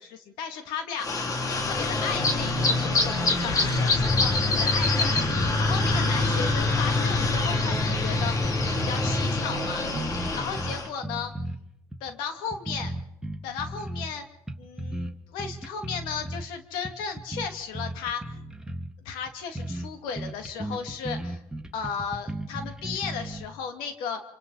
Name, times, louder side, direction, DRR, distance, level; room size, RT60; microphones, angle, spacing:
voice 1, 0.1-8.5 8.9-9.9 10.3-11.3 12.0-12.9 13.4-14.3 14.6-18.4 19.0-21.4 21.7-24.2, left 6 dB, 90° left, 6 dB, 2.4 m, -35 dB
sound 1, 1.0-10.9, left 2 dB, 45° left, 2.8 m, -25 dB
sound 2, 4.3-4.6 4.8-4.9 5.1-6.8 7.2-9.3 9.6-11.6 11.9-12.1 12.5-14.1 14.5-15.1 15.4-16.5 16.8-18.9 19.3-19.4 19.6-19.9 20.2-23.5, right 1 dB, 10° right, 1.9 m, -35 dB
26.5 x 25.5 x 4.1 m, 0.83 s
supercardioid pair, 80°, 8 cm